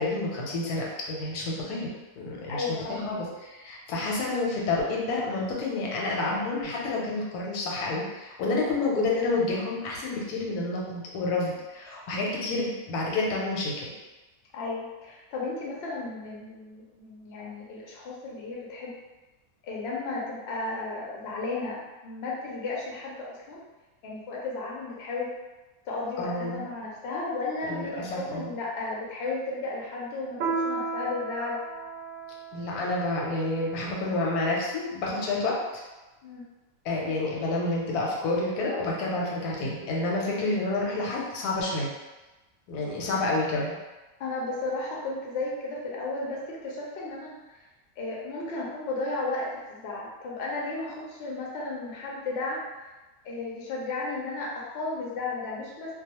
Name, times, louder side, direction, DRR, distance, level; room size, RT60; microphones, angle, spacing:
voice 1, 0.0-1.9 2.2-13.9 26.2-26.6 27.6-28.5 32.5-35.8 36.8-41.9 42.7-43.8, left 2 dB, 90° left, -3 dB, 1.1 m, -29 dB
voice 2, 2.5-3.2 14.5-19.0 19.6-23.6 24.0-25.3 25.9-31.6 36.2-36.5 44.2-47.6 48.0-52.6 53.2-56.0, left 3 dB, 60° left, -4 dB, 0.7 m, -34 dB
Piano, 30.4-35.4, right 4 dB, 65° right, 0.8 m, -36 dB
2.3 x 2.3 x 2.8 m, 1.1 s
omnidirectional pair, 1.6 m